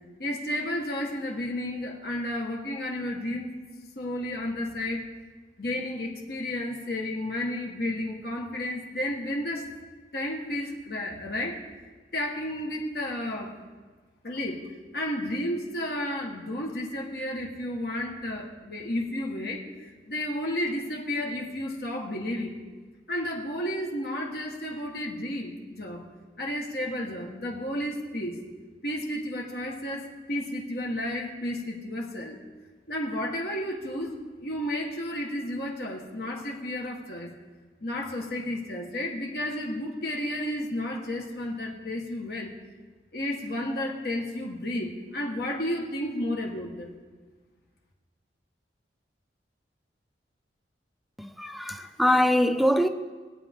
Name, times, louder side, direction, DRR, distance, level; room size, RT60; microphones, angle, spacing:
voice 1, 0.2-3.5 3.9-5.1 5.6-9.7 10.1-11.6 12.1-13.6 14.2-14.6 14.9-22.6 23.1-26.0 26.4-28.4 28.8-32.4 32.9-37.3 37.8-42.5 43.1-46.9, left 1 dB, 55° left, 1.6 m, -32 dB
voice 2, 51.2-52.9, equal, ahead, 0.5 m, -23 dB
21.5 x 8.8 x 3.7 m
head